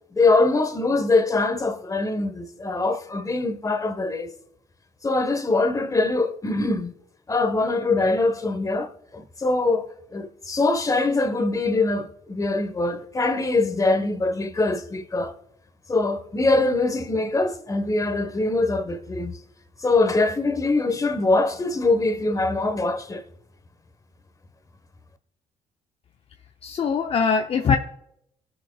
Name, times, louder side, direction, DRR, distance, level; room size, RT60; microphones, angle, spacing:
voice 1, 0.1-4.3 5.0-6.9 7.3-15.3 15.9-19.4 19.8-23.2, left 3 dB, 25° left, 1.1 m, -23 dB
voice 2, 26.6-27.8, left 6 dB, 45° left, 0.6 m, -22 dB
19.5 x 6.6 x 2.3 m
supercardioid pair, 65°, 13 cm